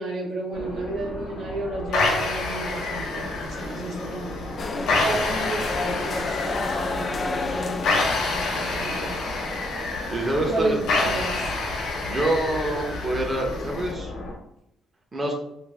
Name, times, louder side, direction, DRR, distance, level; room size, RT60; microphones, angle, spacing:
voice 1, 0.0-9.2 10.3-11.6, right 2 dB, 75° right, -2 dB, 1.0 m, -32 dB
sound 1, 0.5-14.3, left 1 dB, 65° left, 1.0 m, -36 dB
sound 2, 1.9-13.9, left 3 dB, 85° left, 0.7 m, -28 dB
sound 3, 4.6-8.4, left 3 dB, 40° left, 0.3 m, -30 dB
voice 2, 10.1-10.8 12.0-14.1 15.1-15.3, right 1 dB, 25° right, 0 dB, 0.7 m, -26 dB
2.5 x 2.5 x 3.3 m, 0.80 s
cardioid pair, 90°, 0 cm